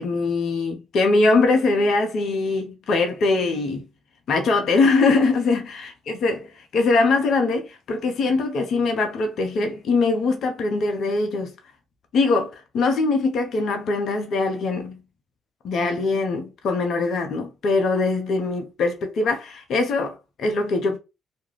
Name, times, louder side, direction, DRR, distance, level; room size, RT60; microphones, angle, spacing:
voice 1, 0.0-3.9 4.3-11.5 12.1-15.0 15.6-21.0, left 3 dB, 60° left, 0.6 m, -22 dB
2.4 x 2.1 x 3.1 m
hypercardioid pair, 50°, 0 cm